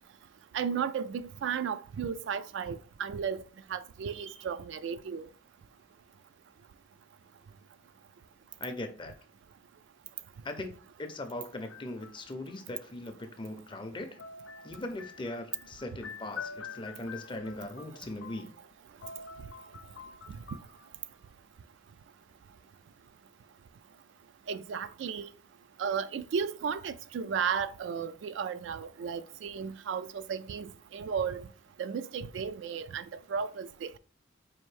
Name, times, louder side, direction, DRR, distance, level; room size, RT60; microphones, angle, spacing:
voice 1, 0.5-3.4 3.7-5.3 20.3-20.4 24.5-25.3 25.8-31.5 31.8-34.0, right 6 dB, 70° right, 0.3 m, -34 dB
voice 2, 8.6-9.1 10.4-14.2 14.6-18.5, left 2 dB, 25° left, 0.5 m, -40 dB
sound 1, 11.6-12.5 14.2-18.8 19.0-21.1, left 5 dB, 85° left, 0.4 m, -46 dB
4.3 x 2.6 x 3.2 m
head